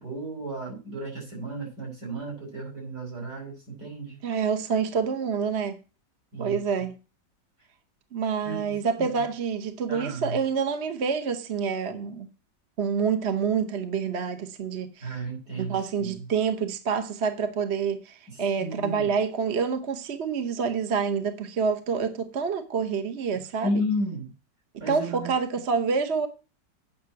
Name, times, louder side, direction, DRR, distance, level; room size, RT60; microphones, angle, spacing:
voice 1, 0.0-4.2 6.3-6.6 8.4-8.8 9.1-9.2 9.9-10.4 15.0-16.1 18.3-19.1 23.6-24.3 24.8-25.3, equal, 70° right, 5.2 m, -33 dB
voice 2, 4.2-5.8 6.4-6.9 8.1-12.3 12.8-15.2 15.6-23.7 24.9-26.3, right 6 dB, 45° right, 1.1 m, -27 dB
8.5 x 6.1 x 7.7 m
omnidirectional pair, 1.9 m